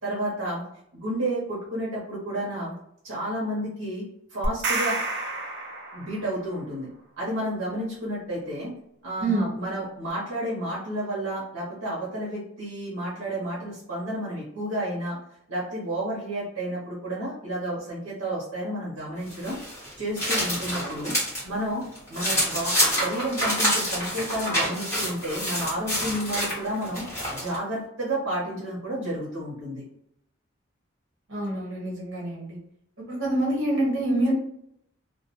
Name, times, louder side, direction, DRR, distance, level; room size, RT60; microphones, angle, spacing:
voice 1, 0.0-0.6 0.9-2.7 3.0-5.0 5.9-6.9 7.2-8.7 9.0-15.2 15.5-19.6 20.0-21.1 21.4-22.7 23.0-27.0 27.3-29.8, right 1 dB, 85° right, -6 dB, 0.8 m, -31 dB
sound 1, 4.4-6.4, right 2 dB, 55° right, 0.5 m, -29 dB
voice 2, 9.2-9.5 31.3-32.6 33.1-34.3, right 1 dB, 70° right, -2 dB, 1.1 m, -26 dB
sound 2, 19.3-21.4 21.8-27.6, equal, 15° left, 1.1 m, -27 dB
2.2 x 2.1 x 2.8 m, 0.74 s
head